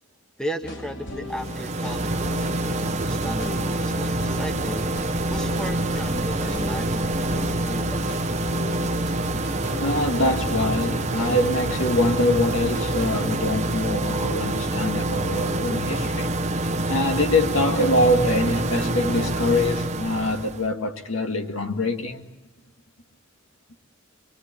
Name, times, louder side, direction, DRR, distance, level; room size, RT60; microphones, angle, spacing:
voice 1, 0.4-4.9 5.3-8.1, equal, 5° left, 1.3 m, -35 dB
sound 1, 0.6-15.9, left 1 dB, 60° left, 3.5 m, -38 dB
sound 2, 1.3-20.7, right 2 dB, 35° right, 1.0 m, -26 dB
voice 2, 9.8-16.3 16.9-22.2, left 1 dB, 75° left, 2.0 m, -24 dB
24.0 x 23.5 x 8.3 m
head